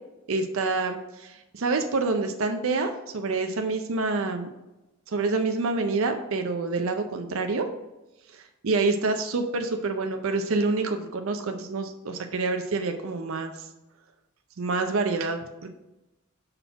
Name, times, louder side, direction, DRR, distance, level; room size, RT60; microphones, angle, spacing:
voice 1, 0.3-4.5 5.1-7.7 8.3-13.7 14.6-15.7, right 3 dB, 70° right, 5 dB, 0.5 m, -27 dB
5.4 x 4.2 x 5.6 m, 1.0 s
head